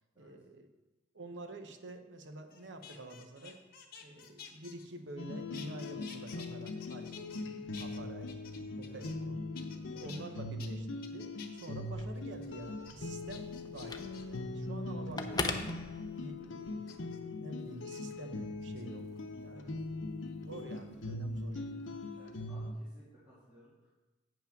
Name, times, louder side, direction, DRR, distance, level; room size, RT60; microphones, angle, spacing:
voice 1, 0.2-0.7 1.1-3.6 4.0-7.3 7.7-8.4 8.8-9.4 9.8-19.1 19.4-20.0 20.4-21.6, right 1 dB, 75° right, 6 dB, 0.9 m, -48 dB
sound 1, 2.5-5.3 5.5-7.5 7.7-9.3 9.6-10.2 10.6-10.7 11.0-11.7 12.1-12.5 12.8-12.9 13.3-14.4 15.2-15.6 16.9-17.2 17.8-18.0 18.6-19.2 20.6-21.8 22.0-22.4, left 7 dB, 55° left, 1.1 m, -52 dB
sound 2, 5.2-22.7, left 2 dB, 85° left, 0.7 m, -41 dB
voice 2, 10.0-10.5 19.5-19.7 22.1-23.9, right 1 dB, 15° right, -13 dB, 2.8 m, -60 dB
Telephone, 11.8-16.6, left 3 dB, 20° left, 0.6 m, -41 dB
8.8 x 5.8 x 5.8 m, 1.1 s
head